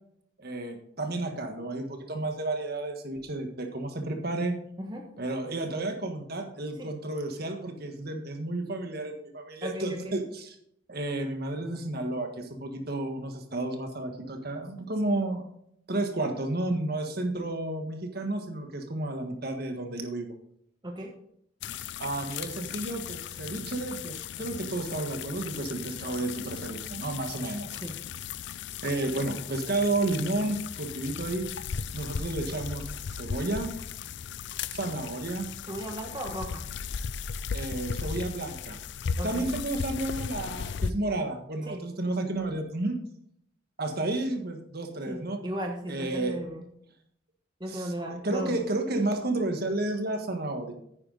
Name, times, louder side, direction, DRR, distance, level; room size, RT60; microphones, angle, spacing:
voice 1, 0.4-4.5 5.2-10.5 10.9-15.5 15.9-20.3 22.0-27.8 28.8-31.4 31.9-33.7 34.7-35.5 37.5-38.8 39.2-43.0 43.8-45.4 45.9-46.4 47.7-50.7, right 2 dB, 50° right, 5 dB, 1.5 m, -32 dB
voice 2, 9.6-10.2 20.8-21.1 27.7-28.0 35.6-36.6 39.2-39.5 41.7-41.8 45.1-46.7 47.6-48.6, equal, 20° right, 2 dB, 1.2 m, -36 dB
sound 1, 21.6-40.9, left 6 dB, 55° left, 0.4 m, -36 dB
9.8 x 9.7 x 4.0 m, 0.70 s
head